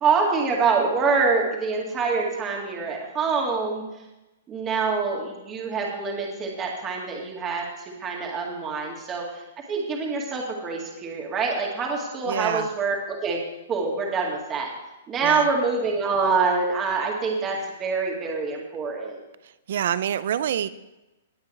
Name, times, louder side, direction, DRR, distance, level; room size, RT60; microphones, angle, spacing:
voice 1, 0.0-3.9 4.5-14.7 15.1-19.2, right 4 dB, 20° right, 0 dB, 2.0 m, -25 dB
voice 2, 12.3-12.7 15.2-15.5 19.7-20.7, right 10 dB, 60° right, 16 dB, 0.5 m, -26 dB
18.5 x 8.0 x 3.4 m, 0.99 s
hypercardioid pair, 160°, 0 cm